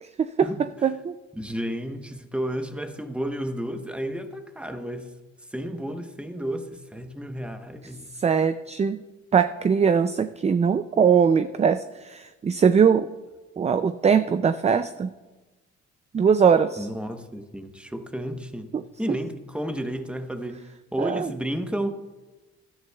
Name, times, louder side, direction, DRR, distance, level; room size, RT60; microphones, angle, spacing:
voice 1, 0.8-1.2 8.2-9.0 9.3-13.1 13.6-15.1 16.1-16.9 18.7-18.8 19.1-19.2 21.0-21.3, right 6 dB, 25° right, 11 dB, 0.3 m, -21 dB
voice 2, 1.3-5.1 5.5-8.1 16.8-18.7 19.0-20.6 20.9-22.0, equal, 5° right, 7 dB, 1.0 m, -32 dB
16.5 x 12.0 x 2.3 m, 1.2 s
cardioid pair, 90°, 30 cm